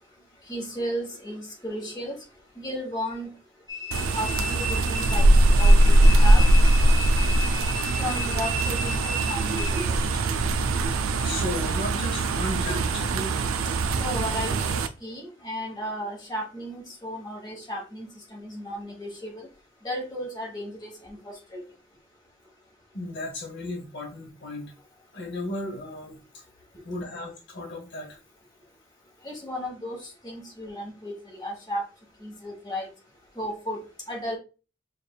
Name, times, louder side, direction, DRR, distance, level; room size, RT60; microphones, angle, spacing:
voice 1, 0.5-2.1 2.6-3.3 4.1-6.4 8.0-9.9 13.9-19.5 19.8-21.6 29.2-31.8 32.2-32.9 33.3-34.4, equal, 20° left, -2 dB, 1.2 m, -34 dB
sound 1, 3.7-10.2, left 3 dB, 20° right, 0.9 m, -34 dB
sound 2, 3.9-14.9, right 1 dB, 85° right, 0.4 m, -21 dB
voice 2, 11.2-13.4 22.9-24.7 25.1-26.2 26.8-28.2, left 1 dB, 55° left, 1 dB, 0.8 m, -34 dB
5.0 x 2.4 x 2.3 m, 0.32 s
head